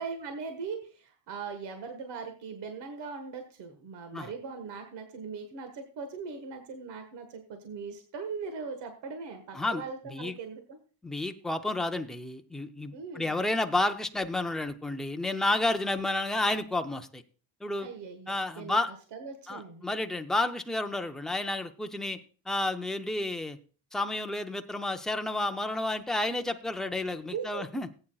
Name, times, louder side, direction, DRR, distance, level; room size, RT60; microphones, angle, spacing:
voice 1, 0.0-10.8 12.9-13.4 17.8-18.8 19.1-19.9 27.3-27.6, right 5 dB, 60° right, 6 dB, 1.5 m, -40 dB
voice 2, 9.5-10.3 11.0-17.2 17.6-17.9 18.3-18.9 19.5-22.2 22.5-23.6 23.9-27.9, left 2 dB, ahead, 5 dB, 0.4 m, -31 dB
18.0 x 8.8 x 2.3 m, 0.38 s
cardioid pair, 155°, 47 cm